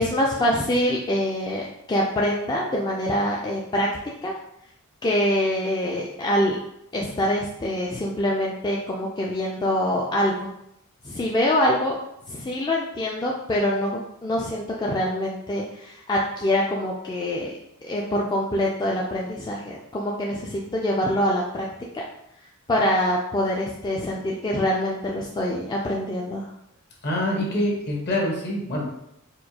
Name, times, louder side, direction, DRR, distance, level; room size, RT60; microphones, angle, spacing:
voice 1, 0.0-3.9 4.2-4.3 5.0-6.6 6.9-10.3 11.0-12.0 12.3-17.5 17.8-21.7 21.9-22.0 22.7-26.5, left 1 dB, 20° left, -3 dB, 0.3 m, -25 dB
voice 2, 27.0-28.8, left 1 dB, 50° left, -2 dB, 1.0 m, -25 dB
4.3 x 2.3 x 2.7 m, 0.78 s
head